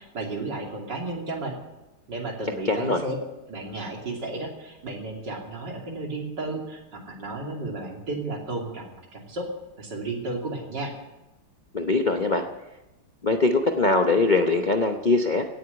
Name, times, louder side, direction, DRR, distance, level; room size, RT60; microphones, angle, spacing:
voice 1, 0.0-1.5 2.1-3.2 3.5-9.4 9.8-10.9, right 2 dB, 55° right, 0 dB, 3.4 m, -33 dB
voice 2, 2.7-3.0 11.7-12.5 13.2-15.5, left 3 dB, 75° left, 5 dB, 0.4 m, -22 dB
17.0 x 7.9 x 9.7 m, 0.99 s
omnidirectional pair, 2.3 m